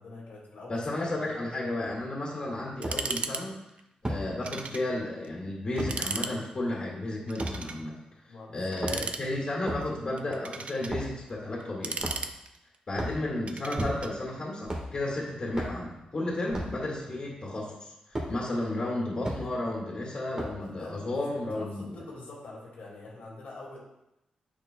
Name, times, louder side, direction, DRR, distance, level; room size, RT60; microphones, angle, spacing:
voice 1, 0.0-1.5 8.3-9.1 20.5-23.8, left 2 dB, 80° left, -4 dB, 2.0 m, -45 dB
voice 2, 0.7-3.6 4.0-7.9 8.5-12.0 12.9-17.9 18.3-22.0, left 1 dB, 35° left, -4 dB, 1.9 m, -33 dB
sound 1, 1.8-1.9 2.8-3.0 4.0-4.2 5.8-5.9 7.4-7.6 8.6-9.2 9.6-9.9 10.9-11.1 12.0-12.4 12.9-13.2 13.8-14.2 14.6-14.9 15.5-15.8 16.5-16.8 18.1-18.3 19.2-19.4 20.4-20.7, right 1 dB, 30° right, 1.5 m, -33 dB
sound 2, 2.8-3.4 3.7-3.8 4.4-4.9 5.2-5.3 5.8-6.3 7.3-7.8 8.7-9.6 10.2-10.9 11.6-12.7 13.5-14.1, right 4 dB, 50° right, 0.4 m, -36 dB
8.6 x 6.5 x 2.2 m, 0.88 s
wide cardioid pair, 125°, 3 cm